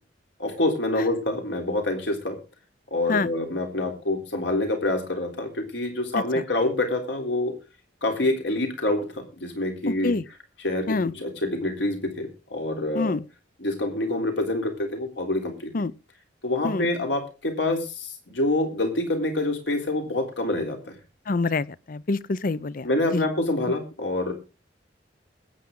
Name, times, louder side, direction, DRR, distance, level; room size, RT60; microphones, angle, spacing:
voice 1, 0.4-2.4 2.9-7.5 8.0-10.1 10.6-13.1 13.6-15.7 16.4-21.0 22.8-24.3, left 2 dB, 75° left, 3.5 m, -26 dB
voice 2, 9.9-10.2 10.9-11.1 12.9-13.2 15.7-15.9 16.6-16.9 21.3-23.3 23.7-23.8, left 3 dB, 50° left, 0.5 m, -26 dB
21.0 x 8.6 x 3.8 m
head